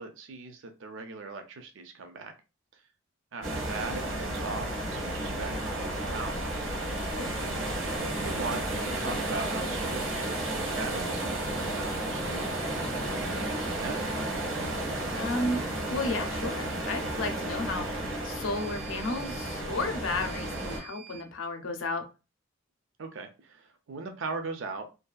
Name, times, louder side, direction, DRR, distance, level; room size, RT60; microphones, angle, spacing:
voice 1, 0.0-2.3 2.7-2.8 3.3-6.4 8.0-14.0 23.0-24.9, right 3 dB, 65° right, 6 dB, 0.5 m, -40 dB
sound 1, 3.4-20.8, right 1 dB, 90° right, 0.9 m, -32 dB
sound 2, 4.3-4.5 5.5-5.8 6.7-7.4 7.9-8.6 10.2-21.3, equal, 5° right, 0.3 m, -47 dB
voice 2, 15.1-15.6 15.9-17.9 18.2-22.0, left 2 dB, 80° left, 6 dB, 0.6 m, -33 dB
2.6 x 2.4 x 2.3 m, 0.29 s
head